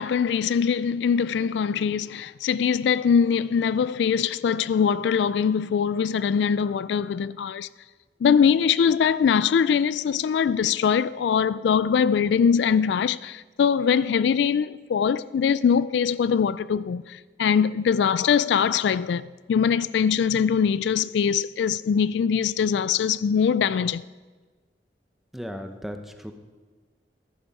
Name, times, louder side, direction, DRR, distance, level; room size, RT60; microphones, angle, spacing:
voice 1, 0.0-7.7 8.2-24.0, left 7 dB, 80° left, 0.3 m, -22 dB
voice 2, 25.3-26.3, equal, ahead, 0.8 m, -36 dB
14.0 x 11.0 x 5.4 m
head